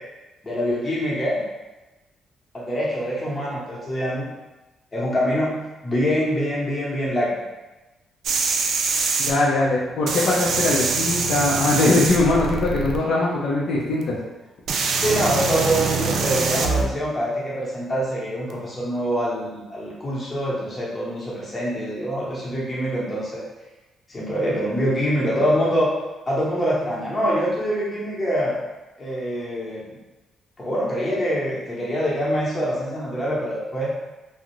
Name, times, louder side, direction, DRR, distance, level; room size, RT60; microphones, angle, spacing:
voice 1, 0.4-1.4 2.5-4.3 4.9-7.3 15.0-23.4 24.1-25.9 26.3-28.6 29.0-30.0 30.6-33.9, equal, 30° left, -6 dB, 0.9 m, -25 dB
sound 1, 8.2-9.3 10.1-13.0 14.0-14.1 14.7-16.8 18.5-18.6, right 4 dB, 65° right, 0.3 m, -24 dB
voice 2, 9.3-14.2, left 2 dB, 70° left, -5 dB, 0.5 m, -21 dB
2.4 x 2.0 x 3.0 m, 1.1 s
cardioid pair, 90°, 0 cm